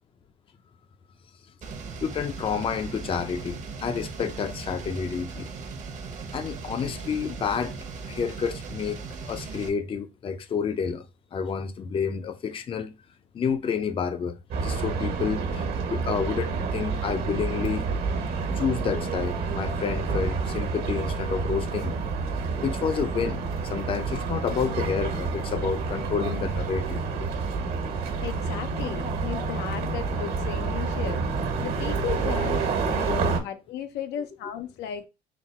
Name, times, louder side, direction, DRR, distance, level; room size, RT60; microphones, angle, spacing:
sound 1, 1.6-9.7, right 4 dB, 45° right, 0.8 m, -38 dB
voice 1, 2.0-5.5 6.3-7.8 8.1-11.0 11.3-12.9 13.3-17.8 18.5-22.0 22.6-27.3 33.1-33.2, left 6 dB, 30° left, 0.4 m, -29 dB
sound 2, 14.5-33.4, right 4 dB, 70° right, 1.3 m, -29 dB
voice 2, 28.2-35.1, left 10 dB, 85° left, 0.6 m, -35 dB
4.1 x 2.0 x 4.2 m
cardioid pair, 110°, 17 cm